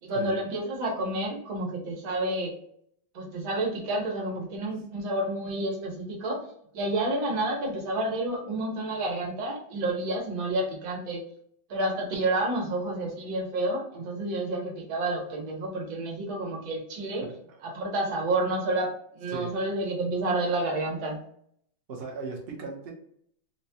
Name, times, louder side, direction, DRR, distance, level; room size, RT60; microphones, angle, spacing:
voice 1, 0.0-2.5 3.1-6.5 6.7-11.2 11.7-17.2 17.6-21.2, right 2 dB, 85° right, -1 dB, 1.8 m, -29 dB
voice 2, 17.2-17.6 19.3-19.6 21.9-22.9, right 4 dB, 45° right, -1 dB, 0.8 m, -37 dB
4.1 x 2.2 x 2.7 m, 0.67 s
omnidirectional pair, 2.1 m